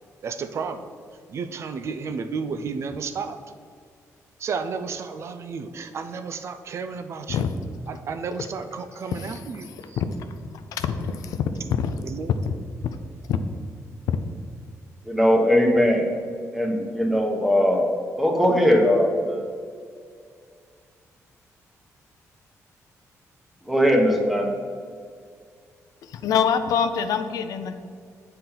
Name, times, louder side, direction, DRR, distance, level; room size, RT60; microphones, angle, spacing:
voice 1, 0.2-0.9 1.3-3.4 4.4-7.5 7.9-10.0 12.0-12.5, right 5 dB, 50° right, 9 dB, 0.4 m, -32 dB
voice 2, 10.7-11.9 13.3-13.4 26.1-27.8, left 7 dB, 85° left, 9 dB, 0.4 m, -25 dB
voice 3, 15.0-16.1 16.5-17.8 18.2-19.4 23.6-24.6, equal, 5° right, 1 dB, 0.9 m, -20 dB
8.2 x 4.4 x 3.8 m, 2.1 s
cardioid pair, 140°, 6 cm